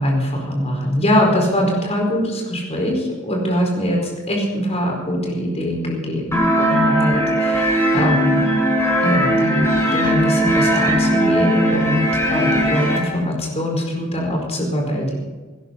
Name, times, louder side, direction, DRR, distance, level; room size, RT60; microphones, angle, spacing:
voice 1, 0.0-8.5 9.0-15.2, equal, 30° left, 0 dB, 4.7 m, -22 dB
sound 1, 6.3-13.0, equal, 15° left, 4.9 m, -18 dB
18.0 x 16.5 x 4.1 m, 1.3 s
head